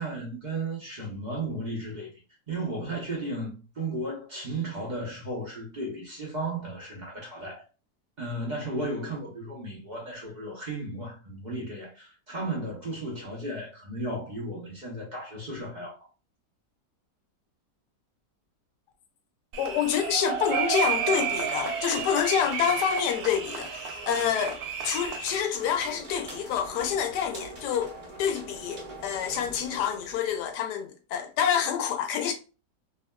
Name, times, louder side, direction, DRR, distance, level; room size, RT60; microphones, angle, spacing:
voice 1, 0.0-2.1 2.5-7.6 8.2-16.0, right 2 dB, 50° right, 0.5 m, -34 dB
sound 1, 19.5-25.4, right 7 dB, 70° right, 1.1 m, -31 dB
voice 2, 19.6-27.9 28.2-32.3, left 8 dB, 75° left, 1.2 m, -27 dB
sound 2, 25.1-30.6, right 1 dB, 35° right, 1.0 m, -44 dB
3.5 x 2.2 x 2.2 m
omnidirectional pair, 1.8 m